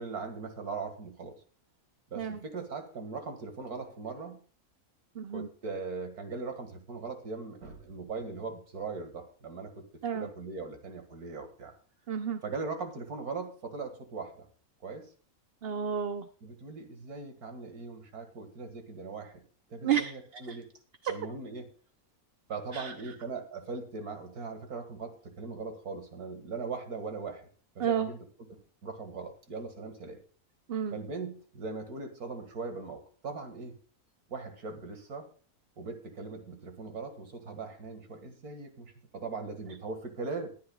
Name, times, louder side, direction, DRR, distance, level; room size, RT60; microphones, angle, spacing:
voice 1, 0.0-1.4 2.1-4.4 5.3-11.7 12.4-14.5 14.8-15.1 16.4-19.4 19.7-20.7 21.1-21.7 22.5-27.5 27.8-30.2 30.9-33.8 34.3-35.3 35.8-40.5, right 4 dB, 85° right, 6 dB, 2.4 m, -40 dB
voice 2, 5.1-5.5 10.0-10.3 12.1-12.4 15.6-16.3 19.8-20.2 20.5-20.6 21.0-21.1 22.7-22.9 27.8-28.1 30.7-31.0, right 8 dB, 50° right, 8 dB, 0.9 m, -31 dB
21.0 x 10.0 x 2.4 m, 0.40 s
omnidirectional pair, 1.5 m